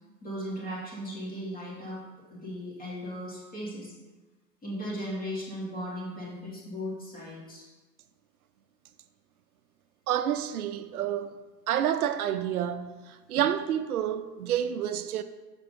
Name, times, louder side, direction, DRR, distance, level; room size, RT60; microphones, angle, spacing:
voice 1, 0.2-2.0 2.3-3.9 4.6-7.7, equal, 20° left, 2.7 m, -37 dB
voice 2, 10.1-15.2, right 10 dB, 60° right, 0.7 m, -29 dB
6.3 x 5.6 x 5.2 m
hypercardioid pair, 130°, 49 cm